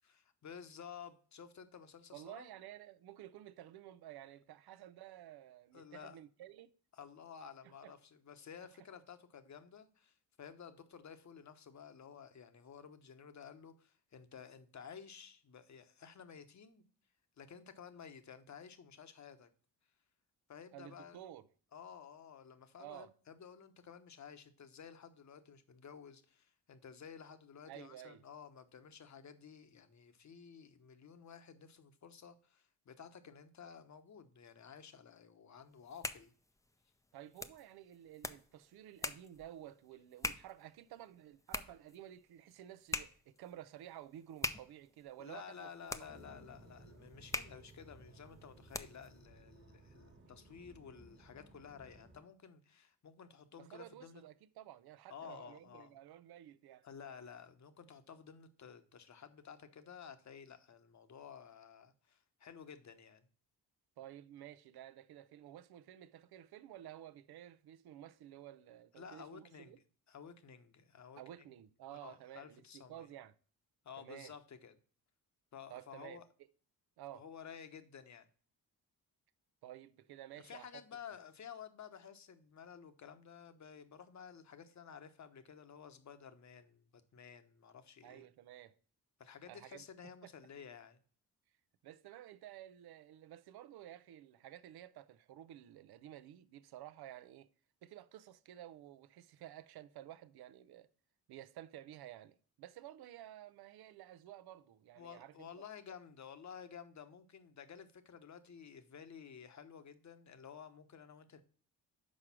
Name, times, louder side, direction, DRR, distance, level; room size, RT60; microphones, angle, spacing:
voice 1, 0.0-2.5 5.7-6.2 6.9-16.9 17.4-19.5 20.5-21.2 21.7-36.3 45.2-54.2 55.1-56.0 56.8-63.2 69.0-69.7 70.1-71.2 71.9-73.1 73.8-74.7 75.5-76.3 77.1-78.3 80.4-88.3 89.2-91.0 104.9-111.4, left 7 dB, 45° left, 1.1 m, -53 dB
voice 2, 2.1-6.7 7.6-8.0 20.7-21.5 22.8-23.1 27.7-28.2 37.1-46.1 53.6-56.9 64.0-69.8 71.2-73.3 74.0-74.3 75.7-76.2 77.0-77.2 79.6-80.8 88.0-88.8 89.5-89.8 90.2-90.3 91.8-97.5 97.8-100.9 101.3-105.5, right 12 dB, 75° right, 0.6 m, -53 dB
sound 1, 35.7-49.2, left 2 dB, 10° left, 0.6 m, -45 dB
sound 2, 46.0-52.2, right 2 dB, 30° right, 1.4 m, -59 dB
6.4 x 4.8 x 5.9 m
cardioid pair, 75°, 38 cm